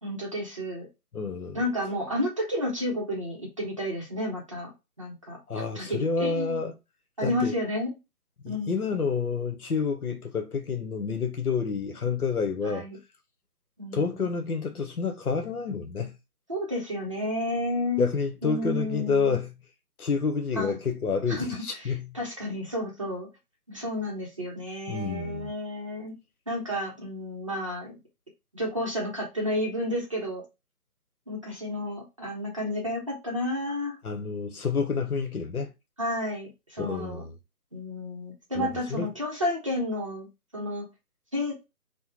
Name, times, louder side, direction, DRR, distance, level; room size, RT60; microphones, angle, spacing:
voice 1, 0.0-0.9 1.5-4.7 5.0-6.5 7.2-8.0 8.4-8.9 12.6-13.0 13.8-14.2 16.5-18.0 18.4-19.4 20.5-20.8 21.3-23.3 23.7-26.1 26.5-28.0 28.5-30.4 31.3-34.0 36.0-37.2 37.7-40.3 40.5-40.8 41.3-41.5, left 1 dB, 20° right, 0.7 m, -31 dB
voice 2, 1.1-1.6 5.5-6.7 7.2-7.5 8.4-12.9 13.9-16.2 18.0-19.5 20.0-22.2 24.9-25.5 34.0-35.7 36.8-37.3 38.5-39.1, left 5 dB, 70° left, 1.1 m, -29 dB
3.4 x 2.2 x 4.4 m
figure-of-eight pair, 160°, 46 cm